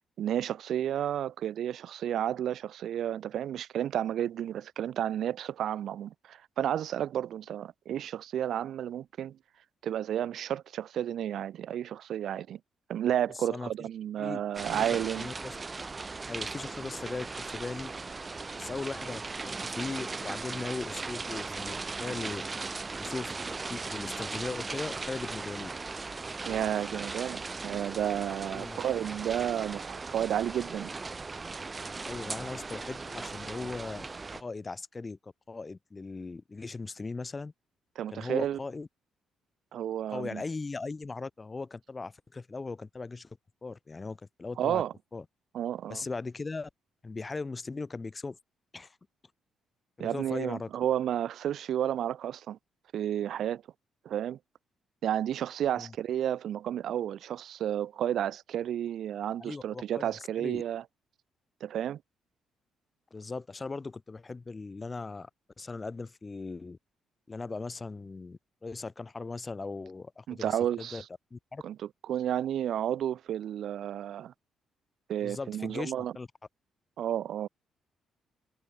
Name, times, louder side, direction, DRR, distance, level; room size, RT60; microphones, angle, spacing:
voice 1, 0.2-9.4 9.8-12.6 12.9-15.3 26.4-30.9 38.0-38.6 39.7-40.4 44.6-44.9 45.5-46.1 50.0-52.6 52.9-53.6 54.0-54.4 55.0-60.8 61.6-62.0 70.3-71.0 71.6-71.8 72.1-74.3 75.1-76.1 77.0-77.5, right 10 dB, 70° right, 2.1 m, -32 dB
voice 2, 13.3-13.7 14.2-14.4 14.7-14.8 15.1-15.6 16.3-17.9 18.5-22.4 23.0-23.3 23.7-25.7 28.5-28.8 32.1-34.1 34.4-37.5 38.1-38.9 40.1-44.8 45.1-45.2 45.9-46.7 47.0-48.4 48.7-49.0 50.0-50.7 55.8-55.9 59.4-60.6 63.1-65.3 65.6-66.8 67.3-71.0 71.3-71.6 75.2-76.3, left 3 dB, 25° left, 2.7 m, -39 dB
sound 1, 14.5-34.4, right 3 dB, 25° right, 2.7 m, -38 dB
cardioid pair, 90°, 0 cm